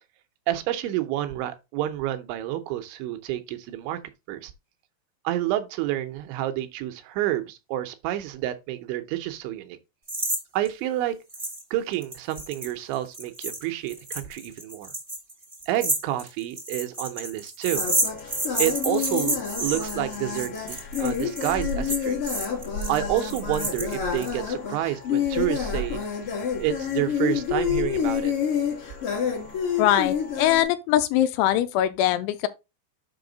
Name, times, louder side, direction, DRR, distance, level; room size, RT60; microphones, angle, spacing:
voice 1, 0.5-4.0 4.3-4.5 5.2-9.8 10.5-11.2 11.7-14.9 15.7-17.8 18.6-22.2 22.9-26.0 26.6-28.3, right 13 dB, 80° right, 3.0 m, -29 dB
sound 1, 10.1-10.4 10.6-10.7 11.3-11.6 11.9-24.3, right 1 dB, 40° right, 0.4 m, -30 dB
sound 2, 17.7-30.6, left 7 dB, 45° left, 1.8 m, -28 dB
voice 2, 29.8-32.5, left 12 dB, 85° left, 2.9 m, -22 dB
6.9 x 5.7 x 3.9 m
omnidirectional pair, 5.6 m